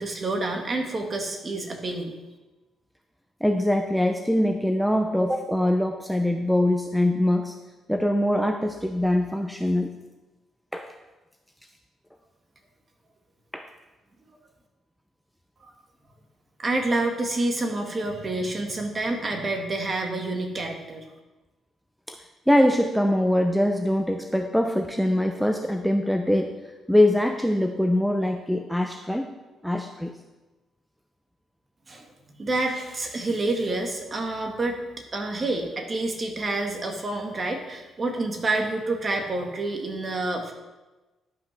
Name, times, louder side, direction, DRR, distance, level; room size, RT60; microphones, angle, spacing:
voice 1, 0.0-2.1 15.6-15.7 16.6-21.0 31.9-32.1 32.4-34.8 35.1-40.5, right 2 dB, 35° right, 2 dB, 2.0 m, -28 dB
voice 2, 3.4-7.5 7.9-9.9 10.7-10.9 13.5-13.7 22.1-22.2 22.5-26.6 26.9-29.3 29.6-30.1, left 1 dB, ahead, 5 dB, 0.7 m, -23 dB
11.5 x 5.8 x 6.0 m, 1.1 s
cardioid pair, 90°, 0 cm